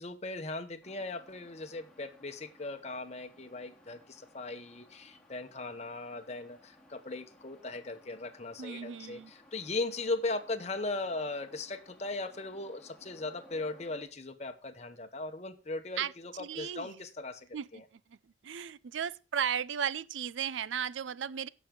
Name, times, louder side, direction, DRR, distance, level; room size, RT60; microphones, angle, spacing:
voice 1, 0.0-17.5 17.7-17.8, left 2 dB, 35° left, 1.0 m, -38 dB
sound 1, 0.8-14.0, left 1 dB, 5° left, 2.2 m, -60 dB
voice 2, 8.6-9.3 16.0-16.1 16.4-17.0 17.5-17.8 18.1-18.2 18.4-21.5, right 8 dB, 85° right, 0.4 m, -35 dB
16.0 x 6.1 x 3.8 m
head